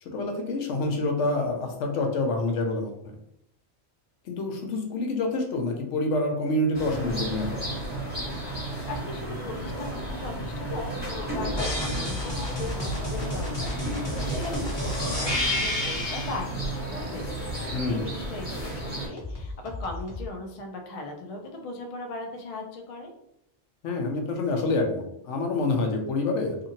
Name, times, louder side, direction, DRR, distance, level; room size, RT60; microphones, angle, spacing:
voice 1, 0.0-3.2 4.3-7.6 17.7-18.1 23.8-26.7, left 2 dB, 80° left, 3 dB, 0.9 m, -27 dB
sound 1, 6.7-19.1, right 1 dB, 10° right, 1.0 m, -33 dB
voice 2, 8.9-23.1, left 2 dB, 60° left, 3 dB, 0.4 m, -38 dB
sound 2, 11.6-16.4 19.2-20.3, left 1 dB, 25° left, 0.7 m, -31 dB
sound 3, 11.8-12.0 13.5-13.6 14.7-18.5 19.1-19.3 19.9-20.2, right 2 dB, 45° right, 0.7 m, -46 dB
2.7 x 2.5 x 2.7 m, 0.75 s
omnidirectional pair, 1.2 m